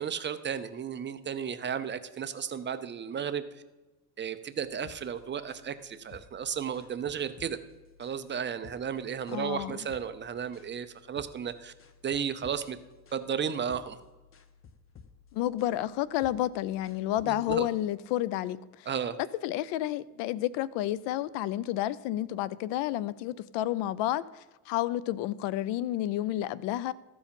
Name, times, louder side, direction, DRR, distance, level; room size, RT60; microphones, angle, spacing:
voice 1, 0.0-3.5 4.2-7.6 8.0-11.7 12.0-12.8 13.1-14.0 17.2-17.7 18.9-19.2, right 7 dB, 25° right, 0.5 m, -34 dB
sound 1, 4.6-17.6, left 6 dB, 30° left, 0.8 m, -56 dB
voice 2, 9.3-9.7 15.3-18.9 19.4-26.9, left 14 dB, 80° left, 0.6 m, -30 dB
14.0 x 4.8 x 5.3 m
cardioid pair, 120°, 42 cm